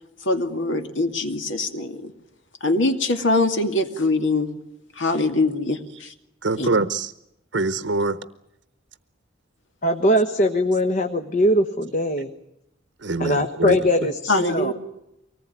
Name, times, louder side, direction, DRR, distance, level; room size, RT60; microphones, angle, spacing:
voice 1, 0.2-2.1 2.6-4.5 5.0-6.1 6.6-6.7 14.3-14.7, left 2 dB, 70° left, 6 dB, 2.5 m, -23 dB
voice 2, 6.4-7.1 7.5-8.2 13.0-13.8, right 3 dB, 65° right, 12 dB, 0.9 m, -24 dB
voice 3, 9.8-12.3 13.2-14.7, equal, 40° left, 6 dB, 1.3 m, -21 dB
24.5 x 19.0 x 9.4 m, 0.85 s
head